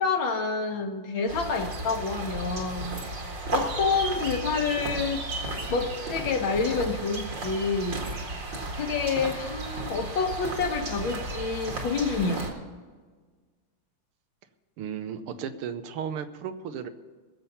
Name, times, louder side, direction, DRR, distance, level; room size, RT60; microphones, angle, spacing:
voice 1, 0.0-3.2 3.5-5.2 5.7-8.1 8.8-12.5, left 4 dB, 65° left, 5 dB, 1.9 m, -28 dB
sound 1, 1.3-12.5, right 2 dB, 55° right, 2.6 m, -34 dB
voice 2, 14.8-16.9, right 8 dB, 80° right, 10 dB, 1.7 m, -34 dB
21.5 x 7.2 x 5.5 m, 1.5 s
omnidirectional pair, 2.4 m